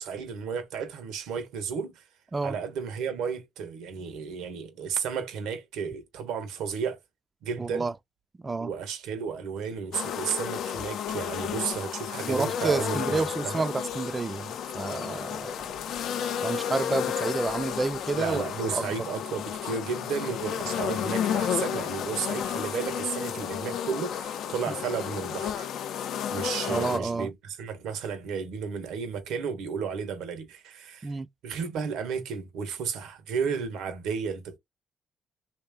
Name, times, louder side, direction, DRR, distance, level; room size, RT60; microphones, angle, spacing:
voice 1, 0.0-2.0 2.4-7.0 7.4-7.9 8.6-13.6 18.1-25.7 26.3-31.1 31.4-34.6, right 6 dB, 90° right, 1.1 m, -33 dB
voice 2, 7.6-7.9 8.4-8.7 12.3-15.5 16.4-18.4 18.7-18.8 26.7-27.3 31.0-31.3, right 3 dB, 25° right, 0.4 m, -29 dB
sound 1, 9.9-27.0, left 8 dB, 75° left, 0.5 m, -32 dB
3.3 x 2.8 x 3.5 m
cardioid pair, 90°, 0 cm